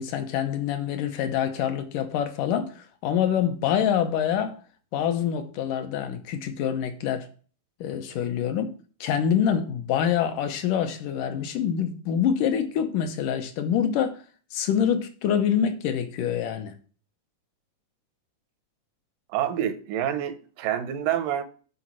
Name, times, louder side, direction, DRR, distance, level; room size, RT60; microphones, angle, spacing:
voice 1, 0.0-4.6 4.9-7.3 7.8-8.7 9.0-14.2 14.5-16.7, left 8 dB, 80° left, 2.4 m, -26 dB
voice 2, 19.3-21.4, right 10 dB, 85° right, 2.4 m, -27 dB
8.9 x 4.2 x 6.1 m
omnidirectional pair, 3.8 m